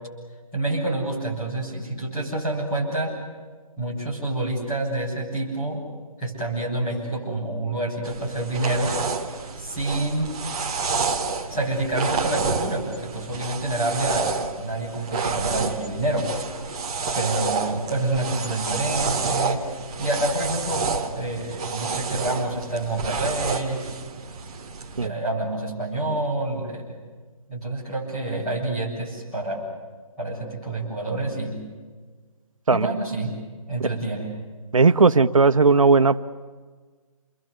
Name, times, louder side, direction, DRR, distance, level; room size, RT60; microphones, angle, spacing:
voice 1, 0.5-3.1 3.8-5.8 6.2-8.9 9.6-10.3 11.5-16.6 17.1-19.6 20.0-23.8 25.0-26.8 27.5-29.6 30.2-31.6 32.7-33.3 33.7-34.3, right 2 dB, 10° left, -6 dB, 7.3 m, -27 dB
sound 1, 8.0-25.1, right 4 dB, 10° right, 1.0 m, -29 dB
voice 2, 34.7-36.2, right 4 dB, 65° right, 11 dB, 1.4 m, -17 dB
29.5 x 23.0 x 8.2 m, 1.4 s
hypercardioid pair, 175°, 18 cm